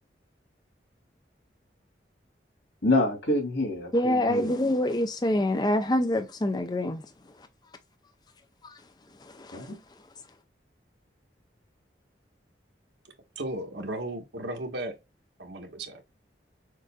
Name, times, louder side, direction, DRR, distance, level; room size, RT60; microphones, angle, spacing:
voice 1, 2.8-4.5 9.5-9.8, left 2 dB, 90° left, 2.8 m, -27 dB
voice 2, 3.9-7.0 8.6-8.7 9.2-9.7, left 1 dB, 25° left, 0.4 m, -26 dB
voice 3, 13.4-14.9 15.4-16.0, right 1 dB, 75° right, 1.2 m, -35 dB
6.5 x 2.6 x 2.2 m
head